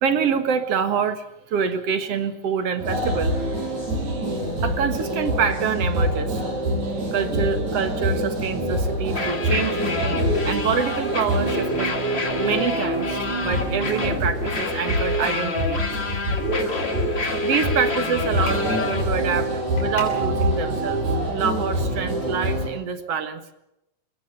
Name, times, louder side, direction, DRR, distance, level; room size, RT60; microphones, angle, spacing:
voice 1, 0.0-3.3 4.6-6.4 7.1-9.8 10.5-11.9 12.4-15.8 16.5-16.7 17.4-19.5 19.8-21.0 21.3-23.4, right 6 dB, 60° right, 9 dB, 2.5 m, -26 dB
sound 1, 2.8-22.7, right 1 dB, 80° right, 7.0 m, -26 dB
sound 2, 9.0-19.0, left 2 dB, 25° left, 1.7 m, -27 dB
sound 3, 15.6-22.4, left 2 dB, 80° left, 7.7 m, -45 dB
24.0 x 21.0 x 6.8 m, 0.87 s
omnidirectional pair, 3.3 m